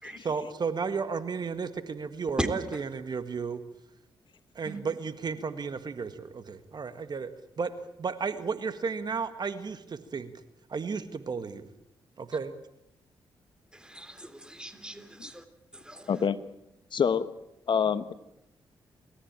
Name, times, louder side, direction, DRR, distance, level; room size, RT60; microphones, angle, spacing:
voice 1, 0.2-3.6 4.5-7.3 7.6-7.7 8.0-10.3 10.7-11.6 12.2-12.5, right 5 dB, 50° right, 11 dB, 1.8 m, -33 dB
voice 2, 2.4-2.8 4.6-4.8 13.7-15.4 15.7-16.2, right 1 dB, 10° right, 10 dB, 3.5 m, -37 dB
voice 3, 16.1-16.4 16.9-17.3 17.7-18.1, left 7 dB, 60° left, 13 dB, 1.2 m, -25 dB
30.0 x 14.0 x 9.0 m, 0.87 s
cardioid pair, 60°, 9 cm